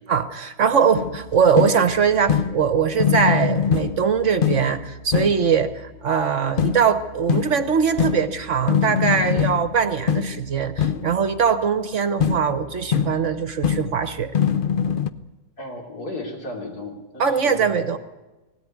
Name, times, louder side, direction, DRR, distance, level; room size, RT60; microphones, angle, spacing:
voice 1, 0.1-14.3 17.2-18.0, right 6 dB, 55° right, 11 dB, 1.2 m, -21 dB
sound 1, 1.0-5.8 6.6-11.5 12.2-15.1, left 8 dB, 45° left, 0.7 m, -24 dB
voice 2, 15.6-17.8, left 2 dB, 70° left, 0 dB, 4.1 m, -34 dB
19.0 x 17.0 x 9.4 m, 1.1 s
omnidirectional pair, 1.7 m